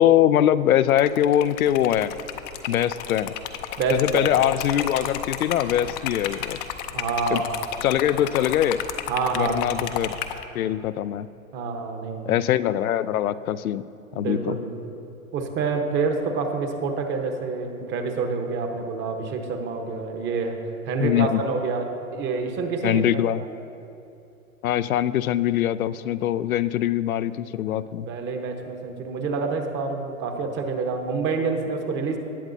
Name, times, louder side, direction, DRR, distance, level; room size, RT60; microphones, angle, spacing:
voice 1, 0.0-2.1 2.7-3.3 3.9-6.6 7.3-7.4 7.8-8.9 9.3-10.2 10.5-11.3 12.3-13.8 14.1-14.6 21.0-21.4 22.8-23.4 24.6-28.1, left 11 dB, 80° left, 16 dB, 0.5 m, -22 dB
Liquid, 0.9-10.4, left 10 dB, 35° left, 0.6 m, -32 dB
voice 2, 3.8-4.3 6.9-7.6 9.1-9.7 11.5-12.3 14.1-14.7 15.3-20.6 20.8-23.5 28.1-32.2, right 4 dB, 25° right, 5 dB, 1.1 m, -27 dB
19.0 x 8.0 x 2.7 m, 2.7 s
hypercardioid pair, 115°, 42 cm